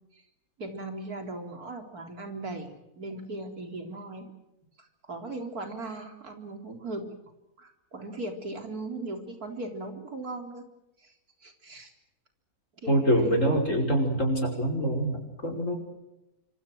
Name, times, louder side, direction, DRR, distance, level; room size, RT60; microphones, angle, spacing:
voice 1, 0.6-4.3 4.8-7.2 7.6-10.7 11.0-11.1 11.4-11.9 12.8-13.6, right 2 dB, 85° right, 5 dB, 4.3 m, -38 dB
voice 2, 12.9-15.8, equal, 55° left, 3 dB, 6.0 m, -25 dB
26.5 x 26.0 x 6.4 m, 0.95 s
omnidirectional pair, 1.6 m